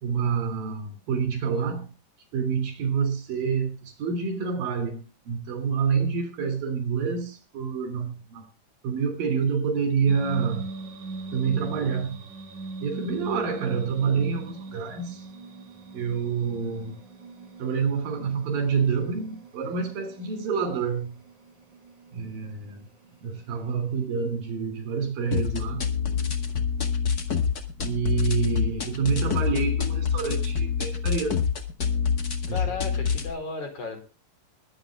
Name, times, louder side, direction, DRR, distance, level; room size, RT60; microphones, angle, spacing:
voice 1, 0.0-1.9 2.3-8.5 8.8-10.7 11.3-12.2 12.8-15.2 15.9-17.0 17.6-21.2 22.1-22.9 23.2-25.9 27.8-31.4 32.5-32.6, right 6 dB, 90° right, 4.8 m, -27 dB
sound 1, 10.1-24.1, right 3 dB, 60° right, 5.0 m, -42 dB
sound 2, 25.3-33.3, left 6 dB, 35° left, 1.7 m, -26 dB
voice 2, 32.5-34.0, left 4 dB, 60° left, 5.7 m, -34 dB
22.0 x 8.8 x 3.6 m
omnidirectional pair, 3.9 m